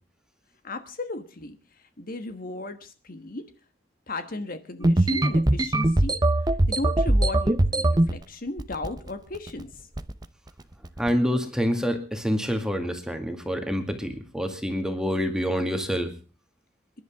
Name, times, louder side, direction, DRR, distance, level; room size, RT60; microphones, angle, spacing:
voice 1, 0.6-3.6 4.1-9.9, left 2 dB, 50° left, 9 dB, 1.4 m, -36 dB
sound 1, 4.8-8.1 8.6-9.1 9.3-9.6 10.0-10.2 10.8-11.1, right 1 dB, 20° right, 0.8 m, -21 dB
voice 2, 11.0-16.1, equal, 5° right, 6 dB, 2.1 m, -27 dB
28.0 x 11.0 x 3.6 m, 0.37 s
head